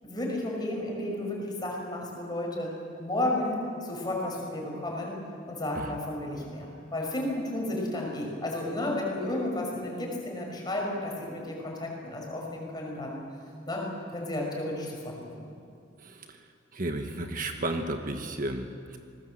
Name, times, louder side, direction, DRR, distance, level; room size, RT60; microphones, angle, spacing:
voice 1, 0.0-2.7 3.0-5.2 5.5-13.2 13.7-13.8 14.1-15.5, left 1 dB, 20° left, -1 dB, 6.1 m, -32 dB
voice 2, 16.0-16.4 16.7-19.0, right 2 dB, 45° right, 5 dB, 1.3 m, -33 dB
26.5 x 19.5 x 7.9 m, 2.4 s
head